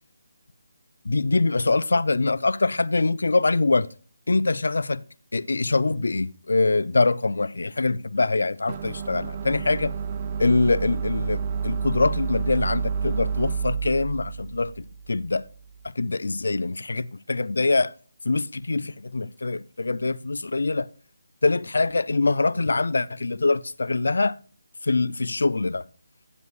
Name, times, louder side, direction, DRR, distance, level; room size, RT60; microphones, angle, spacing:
voice 1, 1.0-3.9 4.3-5.0 5.3-10.0 10.4-15.5 15.8-17.9 18.2-20.9 21.4-24.4 24.8-25.9, left 3 dB, 75° left, 0.4 m, -24 dB
sound 1, 8.7-15.8, right 6 dB, 30° right, 0.5 m, -30 dB
15.0 x 7.1 x 2.4 m
figure-of-eight pair, 160°, 0 cm